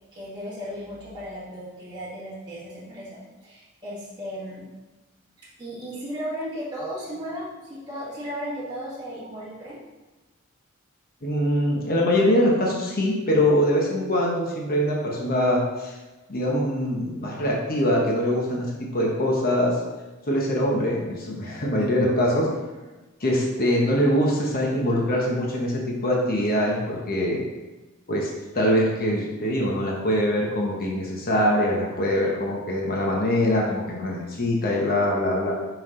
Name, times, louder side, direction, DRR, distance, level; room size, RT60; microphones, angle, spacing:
voice 1, 0.1-4.7 5.6-9.8, equal, 20° right, -9 dB, 1.4 m, -35 dB
voice 2, 11.2-16.0 16.3-19.8 20.3-22.5 23.2-27.4 28.1-35.6, equal, 45° left, -2 dB, 1.0 m, -23 dB
5.8 x 4.6 x 3.8 m, 1.1 s
head